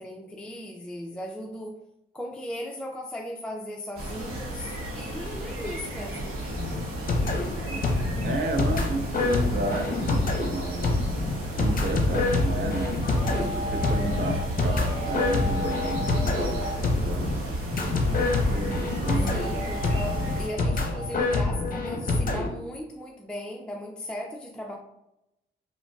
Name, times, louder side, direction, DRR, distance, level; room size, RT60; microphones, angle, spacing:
voice 1, 0.0-1.8 2.1-6.4 19.3-24.7, left 1 dB, 5° left, 0 dB, 0.4 m, -37 dB
sound 1, 4.0-20.5, right 1 dB, 85° right, 0.8 m, -33 dB
sound 2, 6.5-22.5, left 3 dB, 40° left, 0.7 m, -27 dB
voice 2, 8.2-11.1 11.6-13.0 13.3-17.5 18.5-19.4, right 3 dB, 55° right, 3 dB, 0.6 m, -32 dB
sound 3, 11.3-21.4, equal, 20° right, 1.0 m, -38 dB
3.7 x 2.0 x 2.3 m, 0.85 s
supercardioid pair, 55°, 21 cm